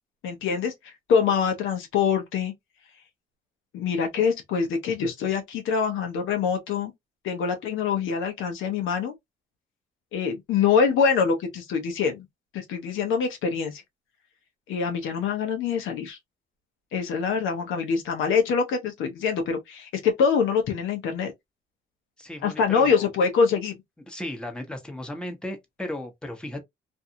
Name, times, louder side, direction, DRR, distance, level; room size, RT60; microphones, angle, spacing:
voice 1, 0.2-2.5 3.7-6.9 7.2-9.1 10.1-12.3 12.5-13.8 14.7-16.2 16.9-21.3 22.4-23.8, left 6 dB, 85° left, 0.9 m, -24 dB
voice 2, 22.2-23.1 24.1-26.6, left 1 dB, 5° left, 0.9 m, -35 dB
2.6 x 2.3 x 2.7 m
cardioid pair, 90°, 20 cm